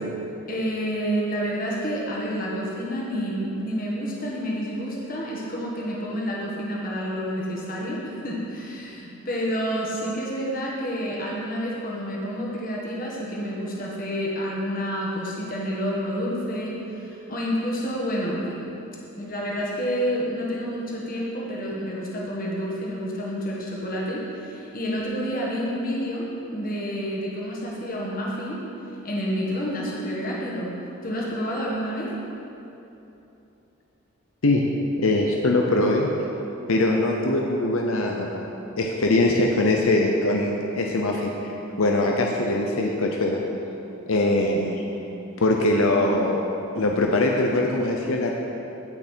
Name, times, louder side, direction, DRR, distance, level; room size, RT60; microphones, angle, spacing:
voice 1, 0.5-18.7 19.1-26.2 26.5-28.6 29.0-30.8 31.0-32.1, equal, 40° left, -4 dB, 1.6 m, -29 dB
voice 2, 34.4-36.1 36.7-38.4 38.8-41.5 41.8-43.4 44.1-44.8 45.4-46.4 46.8-48.3, left 2 dB, 70° left, 1 dB, 0.7 m, -22 dB
16.0 x 5.8 x 4.5 m, 2.9 s
head